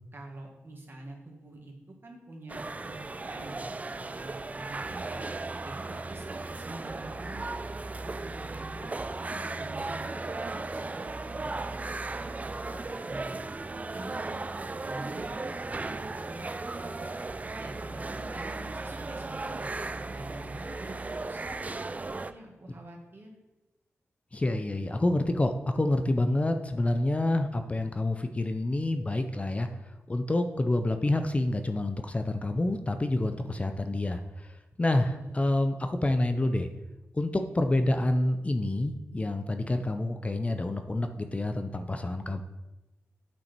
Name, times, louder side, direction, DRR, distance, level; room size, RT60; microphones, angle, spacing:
voice 1, 0.1-1.7 2.0-5.2 5.6-7.5 8.0-11.8 12.2-13.4 13.9-16.5 16.8-17.1 17.6-21.6 22.3-23.4 35.1-35.3, right 2 dB, 45° right, 1 dB, 1.9 m, -46 dB
sound 1, 2.5-22.3, right 3 dB, 30° right, 0.4 m, -36 dB
voice 2, 24.3-29.7 30.1-36.7 37.1-42.4, left 1 dB, 25° left, 7 dB, 0.5 m, -28 dB
8.6 x 5.4 x 4.5 m, 1.0 s
cardioid pair, 65°, 5 cm